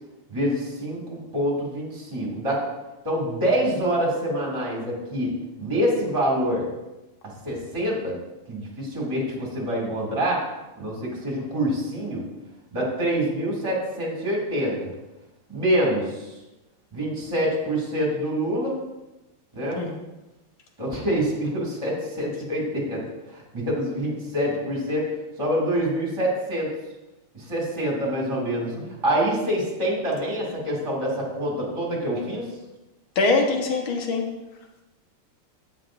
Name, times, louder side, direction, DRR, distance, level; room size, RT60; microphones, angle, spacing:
voice 1, 0.3-2.6 3.0-6.7 7.4-8.1 8.5-10.4 10.8-12.2 12.7-14.9 15.5-16.3 16.9-18.8 19.5-19.9 20.8-23.0 23.3-25.1 25.4-26.7 27.3-32.5, equal, 15° right, -3 dB, 2.2 m, -26 dB
voice 2, 33.2-34.2, left 3 dB, 70° left, 2 dB, 2.0 m, -23 dB
13.0 x 8.3 x 2.5 m, 1.0 s
omnidirectional pair, 2.4 m